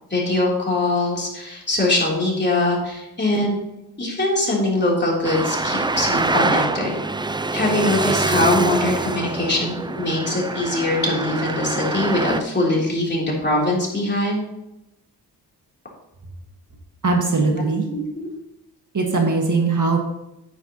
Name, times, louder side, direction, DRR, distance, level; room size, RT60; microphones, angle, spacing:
voice 1, 0.1-3.6 4.0-7.0 7.5-14.4 17.9-18.3, left 2 dB, 25° left, -3 dB, 3.4 m, -22 dB
Traffic noise roadway noise, 5.2-12.4, right 2 dB, 10° right, 0.4 m, -24 dB
voice 2, 17.0-17.8 18.9-20.0, right 3 dB, 50° right, 2 dB, 1.7 m, -20 dB
9.7 x 9.4 x 3.0 m, 0.89 s
wide cardioid pair, 100°, 40 cm